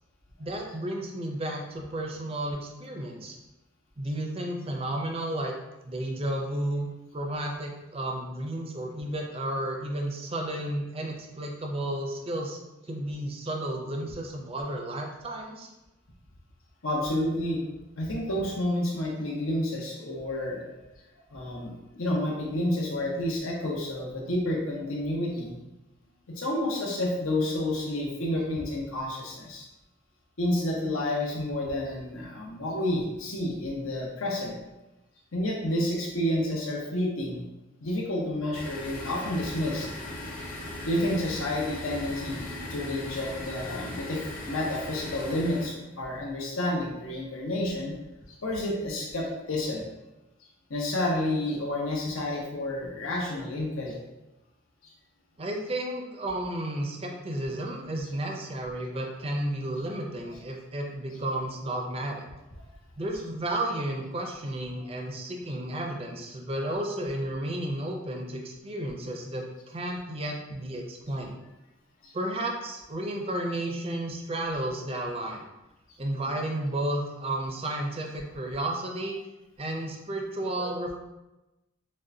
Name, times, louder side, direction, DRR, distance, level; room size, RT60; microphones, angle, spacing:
voice 1, 0.4-3.4 4.0-5.5 5.8-6.9 7.1-12.6 12.8-15.7 55.4-62.3 63.0-71.4 72.1-75.4 76.0-79.2 79.6-80.9, right 1 dB, 30° right, 1 dB, 0.5 m, -32 dB
voice 2, 16.8-17.6 18.0-20.6 21.3-25.6 26.3-29.6 30.4-34.6 35.3-37.4 37.8-39.9 40.8-47.9 48.4-49.9 50.7-54.0 54.8-54.9 72.0-72.1 80.6-80.8, left 1 dB, 90° left, -2 dB, 1.0 m, -30 dB
sound 1, 38.5-45.7, left 1 dB, 40° left, 0.7 m, -38 dB
6.3 x 2.2 x 2.7 m, 0.99 s
head